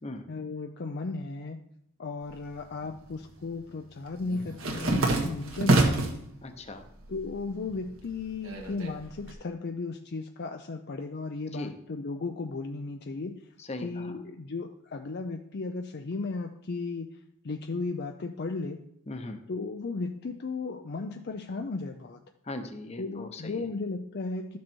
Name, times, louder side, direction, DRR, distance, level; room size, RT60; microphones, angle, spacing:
voice 1, 0.3-1.6 2.0-6.2 7.1-13.4 13.8-17.1 17.4-18.8 19.5-22.2 23.0-24.6, left 3 dB, 45° left, 5 dB, 0.5 m, -35 dB
sound 1, 2.3-3.1 3.4-6.2 6.7-7.3 7.6-9.3, right 2 dB, 65° right, 1.6 m, -27 dB
voice 2, 6.4-6.9 11.5-11.8 13.6-14.2 19.1-19.4 22.4-23.6, left 2 dB, 30° left, 7 dB, 0.9 m, -39 dB
12.5 x 6.2 x 4.5 m, 0.75 s
head